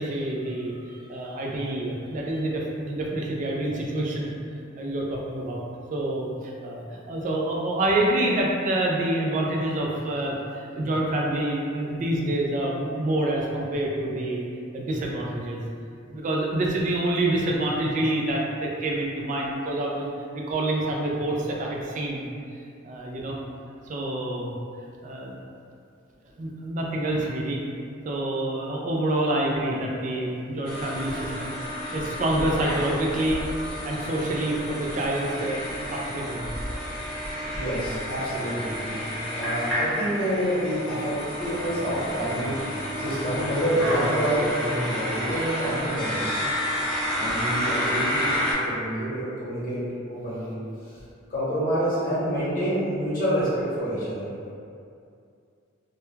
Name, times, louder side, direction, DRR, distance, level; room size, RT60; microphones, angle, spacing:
voice 1, 0.0-0.7 1.1-4.3 4.8-5.6 5.9-14.4 14.7-15.6 16.1-20.1 20.3-22.3 22.8-23.4 23.8-24.5 25.0-25.3 26.4-27.6 28.0-31.5 31.9-33.4 33.8-35.6 35.9-36.5 47.3-47.4, right 1 dB, 35° right, -2 dB, 0.3 m, -27 dB
voice 2, 0.9-1.4 37.5-38.8 39.3-42.6 43.0-46.5 47.1-48.3 48.7-49.8 50.1-50.6 51.3-54.3, equal, 40° left, -11 dB, 0.9 m, -28 dB
sound 1, 30.6-48.5, equal, 5° left, 0.6 m, -30 dB
2.2 x 2.1 x 3.1 m, 2.4 s
head